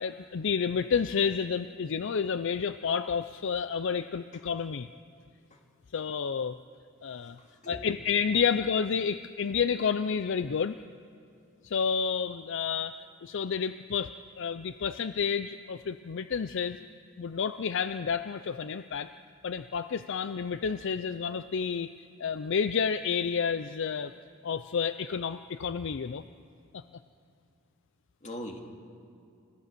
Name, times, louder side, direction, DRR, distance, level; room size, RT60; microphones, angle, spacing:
voice 1, 0.0-4.9 5.9-6.6 7.0-7.4 7.7-10.8 11.6-12.9 13.2-16.8 17.2-19.1 19.4-21.9 22.2-24.1 24.4-26.2 26.7-26.8, left 6 dB, 65° left, 11 dB, 0.5 m, -30 dB
voice 2, 7.2-7.9 28.2-28.6, equal, 35° left, 2 dB, 2.3 m, -42 dB
30.0 x 15.5 x 6.8 m, 2.5 s
head